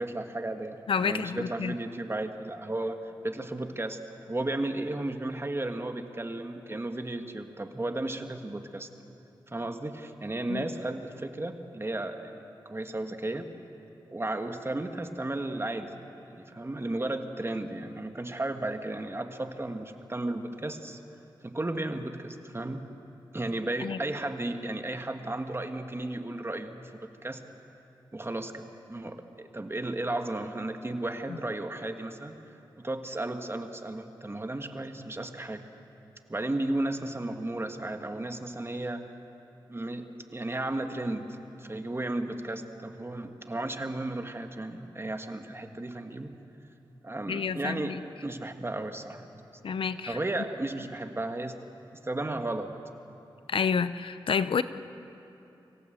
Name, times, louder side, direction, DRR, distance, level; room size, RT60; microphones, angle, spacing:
voice 1, 0.0-3.0 3.2-4.0 4.3-8.9 9.5-13.5 14.1-21.0 21.4-22.9 23.3-27.4 28.1-32.4 32.8-35.7 36.3-39.0 39.7-46.3 47.0-49.3 50.1-51.5 52.0-52.7, right 2 dB, 30° right, 6 dB, 1.6 m, -34 dB
voice 2, 0.9-1.7 10.5-10.7 23.8-24.0 47.3-48.0 49.6-50.2 53.5-54.6, left 6 dB, 80° left, 14 dB, 0.7 m, -29 dB
25.5 x 16.5 x 7.9 m, 2.9 s
cardioid pair, 60°, 9 cm